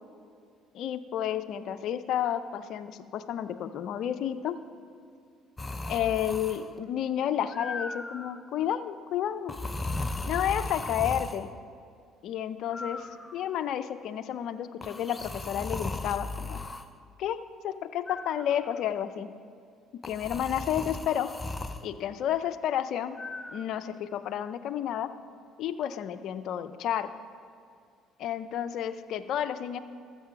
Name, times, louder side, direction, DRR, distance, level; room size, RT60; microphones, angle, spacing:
voice 1, 0.7-4.6 5.9-9.5 10.2-11.5 12.2-16.6 17.2-19.3 19.9-21.3 21.8-23.2 23.5-25.1 25.6-27.1 28.2-29.8, left 10 dB, 65° left, 11 dB, 0.5 m, -31 dB
sound 1, 5.6-6.8 7.5-8.4 9.5-11.4 12.7-13.7 14.8-16.9 18.1-18.8 20.0-21.9 23.2-23.6, left 2 dB, 20° left, 0.6 m, -37 dB
13.0 x 7.5 x 5.9 m, 2.3 s
supercardioid pair, 70°, 0 cm